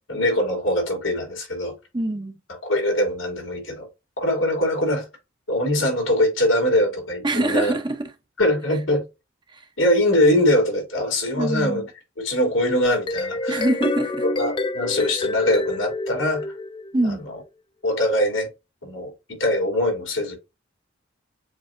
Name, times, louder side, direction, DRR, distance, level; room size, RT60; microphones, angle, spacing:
voice 1, 0.1-1.7 2.6-3.9 4.2-5.1 5.5-7.7 8.4-9.0 9.8-11.8 12.2-13.7 14.4-16.5 17.0-17.4 17.8-18.5 18.8-19.1 19.4-20.4, left 1 dB, 90° left, 2.7 m, -22 dB
voice 2, 1.9-2.3 7.2-8.1 9.5-9.6 11.3-11.9 13.5-14.3 16.9-17.3, right 1 dB, 25° right, 0.7 m, -24 dB
sound 1, 12.9-17.2, left 3 dB, 25° left, 0.3 m, -28 dB
7.2 x 2.7 x 2.5 m
head